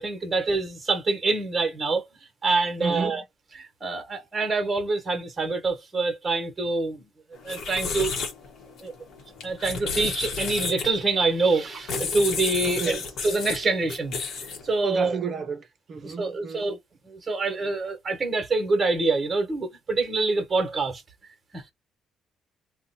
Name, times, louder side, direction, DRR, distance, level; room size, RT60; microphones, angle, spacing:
voice 1, 0.0-2.0 2.4-3.2 3.5-7.0 7.4-8.1 8.8-8.9 9.4-14.2 14.6-15.2 16.0-16.8 17.1-21.0 21.5-21.7, right 3 dB, 25° right, 1.0 m, -26 dB
voice 2, 2.8-3.2 12.7-13.0 14.8-16.7, right 5 dB, 40° right, 0.6 m, -31 dB
sound 1, 7.4-14.8, left 4 dB, 65° left, 0.9 m, -32 dB
2.5 x 2.1 x 4.0 m
cardioid pair, 140°, 0 cm